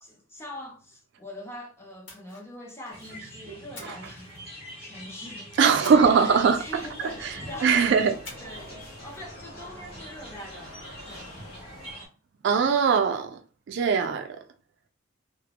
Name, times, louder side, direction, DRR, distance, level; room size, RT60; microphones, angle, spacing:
voice 1, 0.0-4.5 4.8-7.9 8.4-11.6, left 1 dB, 10° left, 0.5 m, -43 dB
Splash splatter, 2.0-3.2 3.7-4.9 5.8-7.1 8.2-8.7 9.0-9.2, left 3 dB, 65° left, 1.0 m, -48 dB
sound 1, 2.9-12.1, equal, 30° left, 0.9 m, -44 dB
voice 2, 5.6-6.8 7.2-7.3 7.6-8.2 12.4-13.4 13.7-14.4, right 6 dB, 60° right, 0.3 m, -21 dB
sound 2, 5.9-11.9, left 1 dB, 90° left, 0.8 m, -47 dB
2.3 x 2.1 x 2.8 m
head